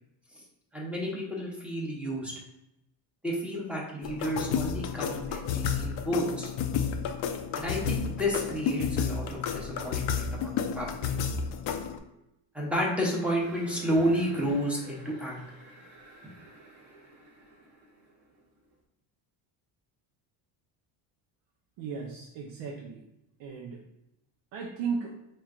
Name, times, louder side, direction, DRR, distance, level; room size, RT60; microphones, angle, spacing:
voice 1, 0.7-2.3 3.2-6.5 7.5-11.2 12.5-15.4, equal, 5° right, -4 dB, 0.9 m, -31 dB
sound 1, 4.0-12.0, left 7 dB, 65° left, 0.5 m, -31 dB
sound 2, 13.4-18.7, right 2 dB, 85° right, 1.3 m, -51 dB
voice 2, 21.8-23.0 23.4-23.8 24.5-25.1, right 5 dB, 70° right, -2 dB, 0.7 m, -35 dB
4.5 x 3.2 x 2.4 m, 0.87 s
cardioid pair, 125°, 47 cm